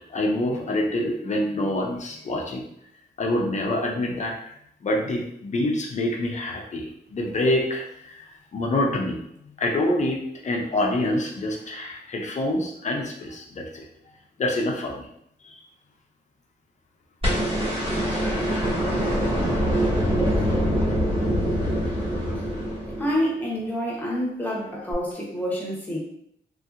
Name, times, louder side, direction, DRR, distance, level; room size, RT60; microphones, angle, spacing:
voice 1, 0.1-2.6 3.2-4.4 4.8-13.8 14.4-15.1 15.4-15.6, left 1 dB, 40° left, 0 dB, 0.4 m, -26 dB
sound 1, 17.2-23.4 24.9-25.0, equal, 30° right, 1.3 m, -24 dB
voice 2, 23.0-26.0, equal, 10° left, -4 dB, 0.8 m, -27 dB
3.1 x 2.7 x 2.4 m, 0.73 s
wide cardioid pair, 165°, 19 cm